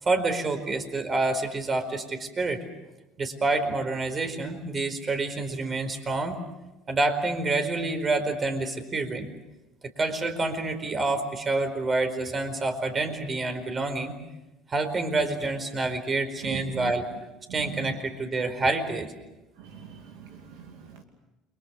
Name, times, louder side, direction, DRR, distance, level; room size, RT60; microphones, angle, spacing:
voice 1, 0.0-2.6 3.2-6.4 6.9-9.3 10.0-14.1 14.7-17.0 17.5-19.1, right 3 dB, 30° right, 7 dB, 4.7 m, -28 dB
voice 2, 16.4-16.9 17.5-17.9 19.6-20.6 20.9-21.0, right 7 dB, 75° right, 4 dB, 2.6 m, -39 dB
29.5 x 24.0 x 6.6 m, 1.0 s
hypercardioid pair, 75°, 0 cm